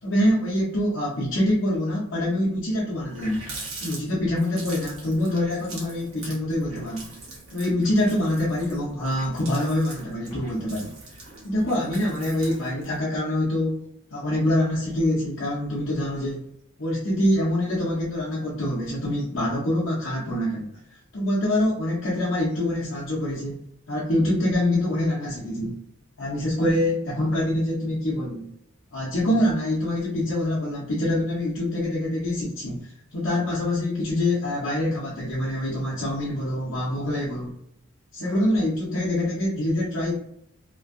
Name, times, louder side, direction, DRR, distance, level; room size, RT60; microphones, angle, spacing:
voice 1, 0.0-3.5 3.8-7.1 7.5-10.9 11.4-13.8 14.1-16.4 16.8-20.8 21.1-25.8 26.2-28.5 28.9-37.5 38.1-40.2, left 1 dB, 70° left, -7 dB, 0.8 m, -25 dB
Water tap faucet, 2.6-2.7 2.9-13.0, right 2 dB, 90° right, 1.0 m, -42 dB
2.9 x 2.6 x 2.5 m, 0.70 s
head